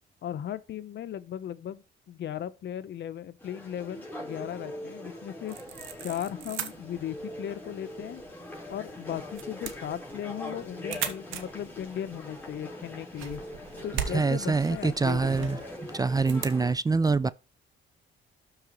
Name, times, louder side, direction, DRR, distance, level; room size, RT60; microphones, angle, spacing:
voice 1, 0.2-5.6 6.0-8.2 8.7-13.4 13.8-15.6, left 10 dB, 65° left, 0.8 m, -37 dB
sound 1, 3.4-16.7, left 1 dB, 10° left, 3.8 m, -42 dB
sound 2, 5.5-16.6, right 9 dB, 85° right, 1.2 m, -41 dB
voice 2, 14.1-15.6 15.9-17.3, right 4 dB, 20° right, 0.4 m, -25 dB
12.5 x 4.8 x 3.0 m
cardioid pair, 90°, 20 cm